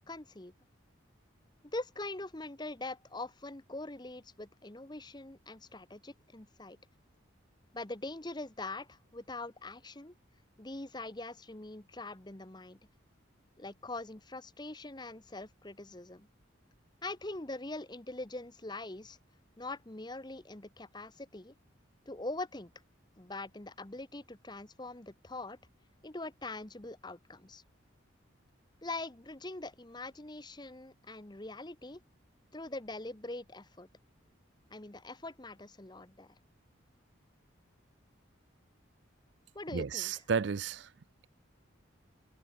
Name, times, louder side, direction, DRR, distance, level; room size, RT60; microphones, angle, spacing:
voice 1, 0.1-0.5 1.6-6.8 7.7-10.1 10.6-12.8 13.6-16.3 17.0-19.2 19.6-21.5 22.1-22.7 23.2-25.6 26.0-27.6 28.8-32.0 32.5-33.9 34.7-36.4 39.5-40.1, left 2 dB, 20° left, 1.1 m, -43 dB
voice 2, 39.7-40.9, right 6 dB, 60° right, 0.4 m, -32 dB
head